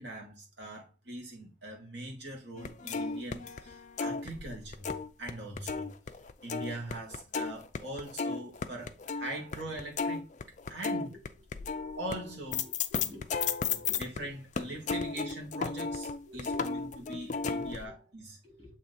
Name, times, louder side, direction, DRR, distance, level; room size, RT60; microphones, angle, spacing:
voice 1, 0.0-4.9 5.2-5.9 6.4-10.3 10.7-11.2 12.0-12.7 13.9-18.4, right 1 dB, 60° right, 2.2 m, -42 dB
sound 1, 2.6-5.3 5.6-14.2 14.6-17.9, left 5 dB, 40° left, 0.4 m, -34 dB
voice 2, 11.6-11.9 12.9-13.2 13.7-14.0 15.1-15.2 16.3-16.6 17.8-17.9 18.4-18.8, left 1 dB, 20° right, 3.9 m, -50 dB
7.4 x 3.2 x 4.2 m
head